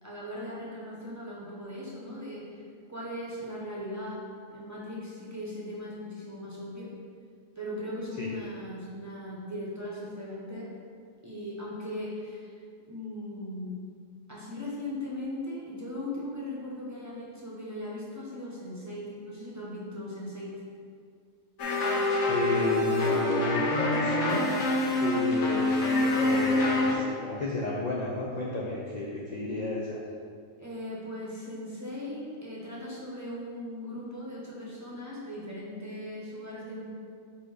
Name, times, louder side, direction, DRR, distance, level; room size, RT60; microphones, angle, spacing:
voice 1, 0.0-2.6 2.9-4.2 4.5-6.9 7.6-10.7 11.2-12.5 12.9-13.8 14.3-20.5 30.6-36.8, left 1 dB, 15° right, -6 dB, 1.0 m, -38 dB
sound 1, 21.6-26.9, left 2 dB, 70° left, 1.2 m, -26 dB
voice 2, 22.3-24.5 25.0-25.9 26.2-30.0, left 2 dB, 45° left, -5 dB, 0.6 m, -31 dB
4.5 x 4.4 x 5.0 m, 2.2 s
omnidirectional pair, 1.4 m